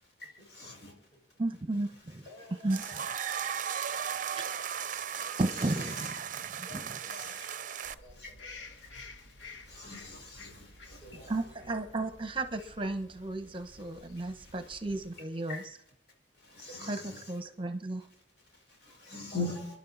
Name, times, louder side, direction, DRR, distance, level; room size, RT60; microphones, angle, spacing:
voice 1, 0.5-0.9 2.1-2.2 2.7-2.9 3.6-4.6 5.1-6.1 7.0-7.5 8.2-8.3 9.7-11.4 12.6-12.7 15.1-15.6 16.4-17.4 18.9-19.7, left 3 dB, 60° left, 1 dB, 4.8 m, -43 dB
voice 2, 1.4-2.2 2.6-2.8 4.3-4.4 5.4-6.1 11.3-15.6 16.9-17.0 17.3-18.1, right 2 dB, 30° right, 9 dB, 1.2 m, -33 dB
voice 3, 2.2-4.5 6.6-8.8 10.9-12.1 16.7-17.0 19.0-19.6, left 1 dB, 25° left, -2 dB, 6.1 m, -54 dB
sound 1, 2.7-7.9, right 8 dB, 45° right, 0.7 m, -36 dB
sound 2, 7.8-15.1, left 3 dB, 80° left, 1.3 m, -52 dB
28.0 x 11.0 x 4.2 m, 0.78 s
head